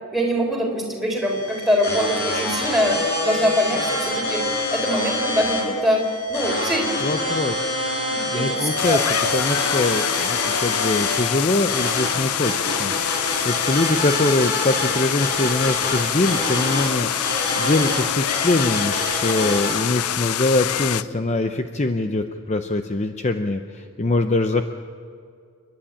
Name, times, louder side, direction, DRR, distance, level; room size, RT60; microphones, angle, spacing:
voice 1, 0.1-6.0 6.3-6.9 8.1-9.0, equal, ahead, -1 dB, 4.0 m, -23 dB
sound 1, 1.2-19.7, left 1 dB, 50° left, 6.7 m, -26 dB
voice 2, 7.0-7.7 8.3-9.0 9.3-12.9 13.2-24.6, left 2 dB, 30° left, 7 dB, 0.7 m, -23 dB
sound 2, 8.8-21.0, left 11 dB, 85° left, 0.5 m, -26 dB
29.0 x 11.5 x 8.8 m, 2.3 s
head